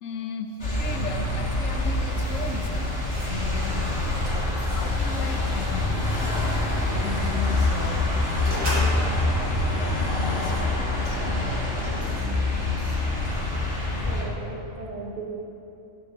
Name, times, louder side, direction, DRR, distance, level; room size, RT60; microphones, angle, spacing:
voice 1, 0.0-4.5 4.8-6.5 6.9-11.2, left 5 dB, 75° left, 5 dB, 1.1 m, -37 dB
sound 1, 0.6-14.2, left 2 dB, 60° left, 2.1 m, -25 dB
sound 2, 3.1-3.6 4.2-4.9 5.1-5.4 5.8-7.0 7.6-7.7 8.4-9.3 9.8-11.0 11.6-13.7, equal, 85° right, 2.9 m, -38 dB
voice 2, 14.0-15.3, right 3 dB, 40° right, 1 dB, 1.0 m, -36 dB
11.0 x 7.7 x 3.6 m, 2.9 s
omnidirectional pair, 1.4 m